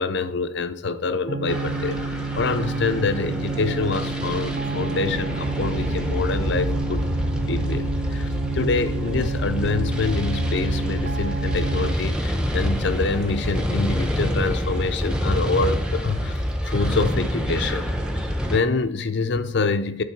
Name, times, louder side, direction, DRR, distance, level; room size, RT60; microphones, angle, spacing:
voice 1, 0.0-2.0 2.3-7.0 7.5-16.4 16.7-17.9 18.5-20.0, left 4 dB, 55° left, 0.5 m, -26 dB
sound 1, 1.3-11.9, right 4 dB, 40° right, 0.4 m, -30 dB
sound 2, 1.5-18.6, equal, 5° right, 0.7 m, -27 dB
8.5 x 4.0 x 5.7 m
head